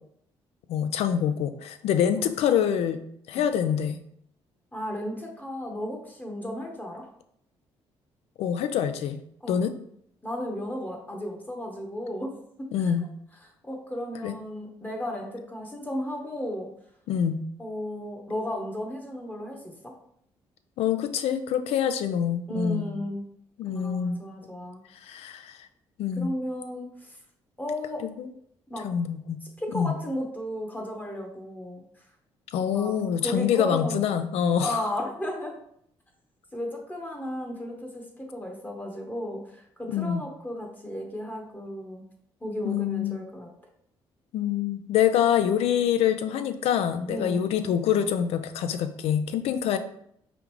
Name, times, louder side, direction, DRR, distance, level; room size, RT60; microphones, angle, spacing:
voice 1, 0.7-3.0 3.3-4.0 8.4-9.2 9.5-9.7 12.7-13.0 14.2-14.3 17.1-17.4 20.8-22.9 23.6-24.2 25.0-25.6 26.0-26.3 28.0-28.3 28.8-29.4 29.7-29.9 32.5-34.8 39.9-40.2 42.6-43.2 44.3-49.8, left 9 dB, 75° left, 10 dB, 0.4 m, -25 dB
voice 2, 4.7-7.0 9.4-9.6 10.2-12.3 12.8-12.9 13.4-16.7 17.6-19.9 22.5-23.2 23.7-24.8 25.1-25.2 26.2-27.2 27.6-28.0 28.7-28.9 29.6-31.8 32.7-34.2 34.6-35.6 36.5-42.0 42.4-43.5 47.1-47.5, left 1 dB, 15° left, 1 dB, 1.0 m, -34 dB
5.0 x 2.5 x 3.0 m, 0.70 s
supercardioid pair, 70°, 11 cm